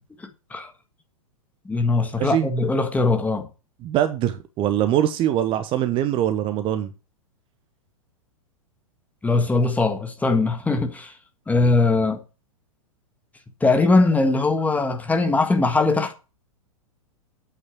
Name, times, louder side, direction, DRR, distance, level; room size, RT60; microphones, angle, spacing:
voice 1, 0.2-0.7 1.6-3.5 9.2-11.1 11.5-12.2 13.6-16.1, left 3 dB, 10° left, 1.6 m, -21 dB
voice 2, 2.2-2.5 3.8-6.9, right 11 dB, 30° right, 1.0 m, -23 dB
8.6 x 6.4 x 7.2 m
figure-of-eight pair, 100°, 18 cm